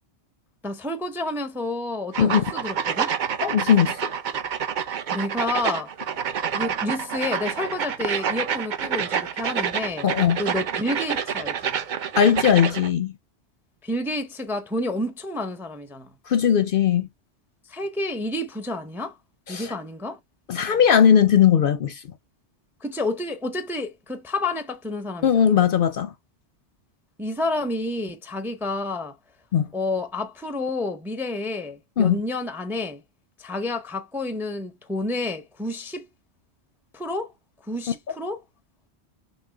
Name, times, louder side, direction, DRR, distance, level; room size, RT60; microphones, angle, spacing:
voice 1, 0.6-3.1 5.1-5.9 6.5-10.1 10.4-11.8 13.8-16.1 17.7-19.1 19.5-20.2 22.8-25.5 27.2-29.1 29.7-33.0 33.4-36.0 36.9-37.3 37.7-38.4, left 2 dB, 5° right, 0.4 m, -29 dB
sound 1, 2.1-12.9, right 7 dB, 55° right, 0.6 m, -28 dB
voice 2, 3.4-4.0 10.0-10.4 12.2-13.1 16.3-17.1 19.5-19.7 20.5-22.0 25.2-26.1 29.5-29.7 32.0-32.2, left 8 dB, 60° left, 0.6 m, -19 dB
6.3 x 2.1 x 3.3 m
omnidirectional pair, 1.2 m